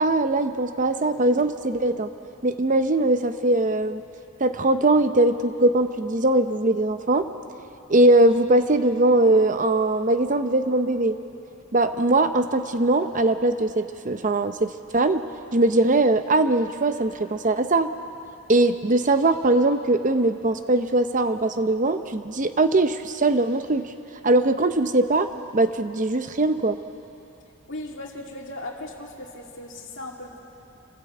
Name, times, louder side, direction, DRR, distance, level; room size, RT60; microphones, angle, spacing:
voice 1, 0.0-2.1 2.4-4.0 4.4-7.3 7.9-11.2 11.7-15.3 15.5-17.9 18.5-23.9 24.2-26.8, right 2 dB, 35° right, 9 dB, 0.7 m, -21 dB
voice 2, 27.7-30.4, left 1 dB, 60° left, -1 dB, 2.4 m, -37 dB
27.0 x 15.0 x 8.2 m, 2.9 s
head